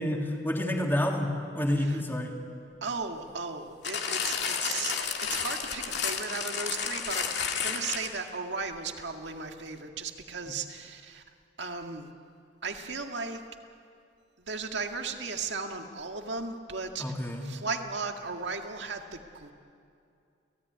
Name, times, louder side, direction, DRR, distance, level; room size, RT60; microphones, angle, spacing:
voice 1, 0.0-2.3 17.0-17.5, left 1 dB, 10° left, 1 dB, 2.8 m, -29 dB
voice 2, 2.8-4.9 5.2-11.2 11.6-12.1 12.6-13.4 14.4-17.1 17.4-19.5, right 4 dB, 70° right, 4 dB, 2.0 m, -36 dB
sound 1, 3.8-8.3 9.0-9.1, left 7 dB, 65° left, 2.4 m, -31 dB
29.5 x 17.5 x 9.7 m, 2.5 s
head